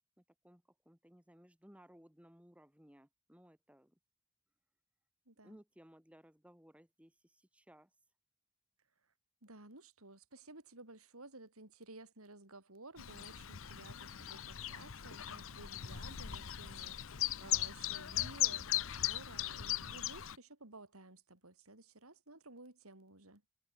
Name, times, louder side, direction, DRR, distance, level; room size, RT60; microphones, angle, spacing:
voice 1, 0.2-4.0 5.4-7.9, equal, 5° right, 1.8 m, -61 dB
voice 2, 5.3-5.6 9.4-17.0 17.4-23.4, right 2 dB, 85° right, 5.4 m, -55 dB
Chirp tweet, 13.0-20.4, left 12 dB, 70° left, 0.8 m, -38 dB
head